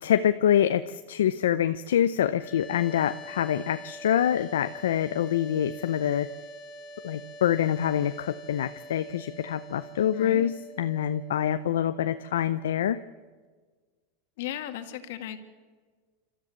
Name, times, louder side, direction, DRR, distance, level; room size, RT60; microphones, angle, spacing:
voice 1, 0.0-6.3 7.0-13.0, left 10 dB, 90° left, 10 dB, 0.6 m, -26 dB
sound 1, 2.3-13.4, equal, 35° left, 4.8 m, -46 dB
voice 2, 10.1-10.5 14.4-15.4, left 10 dB, 70° left, 7 dB, 2.0 m, -35 dB
26.5 x 13.5 x 8.1 m, 1.5 s
supercardioid pair, 120°, 0 cm